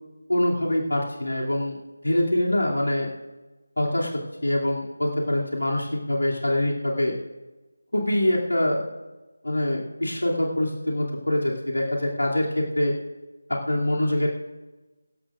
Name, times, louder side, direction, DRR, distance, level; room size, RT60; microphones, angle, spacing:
voice 1, 0.3-1.8 2.0-3.1 3.8-4.1 4.4-7.2 7.9-8.8 9.4-13.0 13.5-14.3, left 1 dB, 75° left, -2 dB, 2.7 m, -24 dB
23.5 x 13.0 x 2.5 m, 1.2 s
figure-of-eight pair, 160°, 0 cm